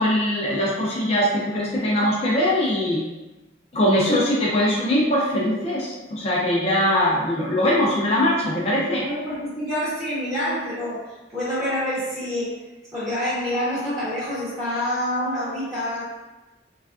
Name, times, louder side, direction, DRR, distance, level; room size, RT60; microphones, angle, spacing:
voice 1, 0.0-3.0 3.7-9.0, left 1 dB, 35° left, -5 dB, 0.4 m, -21 dB
voice 2, 9.0-12.5 12.9-16.0, equal, 15° right, -13 dB, 0.7 m, -27 dB
3.2 x 2.3 x 2.4 m, 1.1 s
head